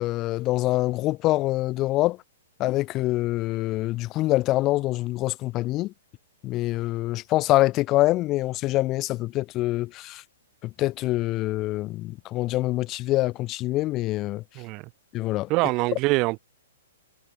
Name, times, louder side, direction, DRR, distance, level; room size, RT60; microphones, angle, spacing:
voice 1, 0.0-2.2 2.6-5.9 6.4-10.2 10.6-14.4 15.1-15.5, left 17 dB, 35° left, 2.0 m, -25 dB
voice 2, 15.5-16.4, right 24 dB, 40° right, 3.8 m, -24 dB
hypercardioid pair, 120°, 0 cm